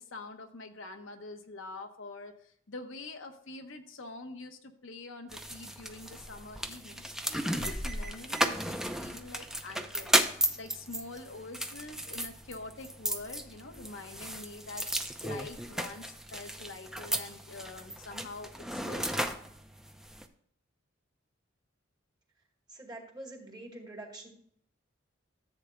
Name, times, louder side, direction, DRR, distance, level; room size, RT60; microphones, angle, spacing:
voice 1, 0.0-19.4, left 3 dB, 70° left, 5 dB, 1.0 m, -46 dB
sound 1, 5.3-20.2, right 1 dB, 5° right, 0.6 m, -34 dB
voice 2, 22.7-24.3, right 2 dB, 20° right, 1 dB, 2.0 m, -45 dB
14.0 x 8.2 x 2.3 m, 0.65 s
head